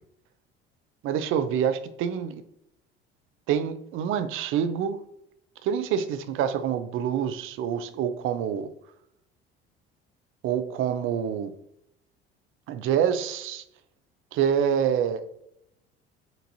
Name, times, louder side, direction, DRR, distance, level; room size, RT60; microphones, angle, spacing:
voice 1, 1.0-2.4 3.5-5.0 5.6-8.7 10.4-11.5 12.7-13.6 14.3-15.4, right 8 dB, 40° right, 0.5 m, -26 dB
4.4 x 2.5 x 2.8 m
figure-of-eight pair, 65°, 31 cm